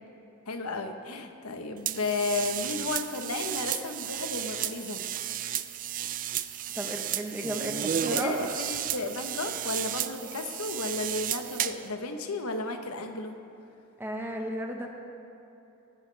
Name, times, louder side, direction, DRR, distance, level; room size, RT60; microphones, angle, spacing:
voice 1, 0.5-5.0 8.1-13.3, left 3 dB, 85° left, 5 dB, 1.1 m, -33 dB
sound 1, 1.9-11.9, right 10 dB, 40° right, 0.4 m, -33 dB
voice 2, 6.7-8.4 8.7-8.8 14.0-14.9, right 1 dB, 10° right, 1 dB, 1.1 m, -34 dB
19.0 x 10.5 x 3.4 m, 3.0 s
head